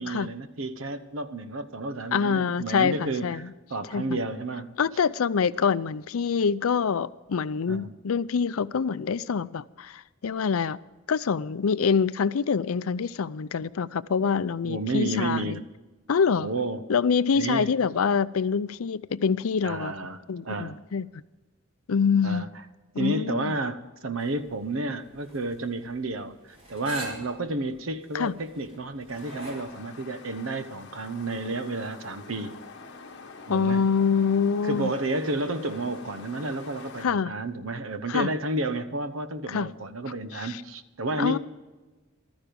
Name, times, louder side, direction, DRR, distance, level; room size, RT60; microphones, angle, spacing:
voice 1, 0.0-4.8 7.7-7.9 14.6-15.6 16.4-16.8 17.3-17.7 19.6-20.8 22.2-22.5 23.0-32.6 33.5-33.8 34.6-41.4, right 2 dB, 65° right, 1.0 m, -31 dB
voice 2, 2.1-3.5 3.9-4.2 4.8-10.8 11.1-15.6 16.1-16.5 16.9-19.9 20.3-21.1 21.9-22.5 22.9-23.5 28.1-28.3 33.5-34.9 37.0-37.3 38.1-38.3 39.5-39.7 40.3-40.6 41.2-41.4, left 6 dB, 80° left, 0.5 m, -25 dB
sound 1, 24.2-29.6, right 1 dB, 30° right, 4.2 m, -44 dB
sound 2, 29.1-37.1, left 4 dB, 55° left, 1.4 m, -46 dB
15.0 x 13.0 x 5.2 m
head